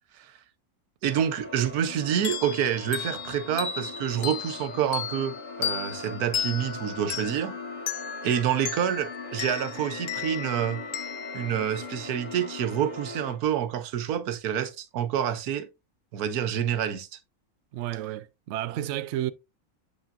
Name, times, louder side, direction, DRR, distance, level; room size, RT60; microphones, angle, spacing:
sound 1, 1.0-13.3, left 3 dB, 40° left, 2.5 m, -40 dB
voice 1, 1.0-7.6 8.2-10.8 11.3-15.7 16.1-17.1, right 9 dB, 85° right, 1.3 m, -28 dB
sound 2, 2.2-12.5, left 9 dB, 60° left, 0.6 m, -36 dB
voice 2, 17.7-19.3, right 13 dB, 65° right, 0.7 m, -31 dB
8.1 x 5.8 x 2.5 m
omnidirectional pair, 1.6 m